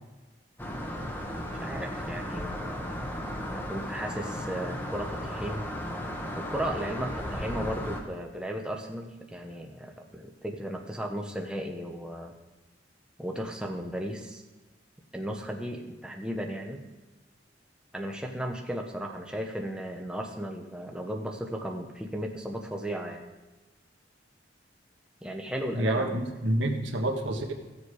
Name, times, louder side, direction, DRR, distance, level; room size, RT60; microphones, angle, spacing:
sound 1, 0.6-8.0, equal, 10° left, 1.2 m, -35 dB
voice 1, 1.5-5.7 6.4-12.3 13.2-14.4 15.1-16.8 17.9-23.2 25.2-26.2, equal, 5° right, 2 dB, 0.9 m, -35 dB
voice 2, 25.7-27.5, right 1 dB, 75° right, 4 dB, 1.4 m, -28 dB
15.0 x 7.2 x 4.8 m, 1.2 s
head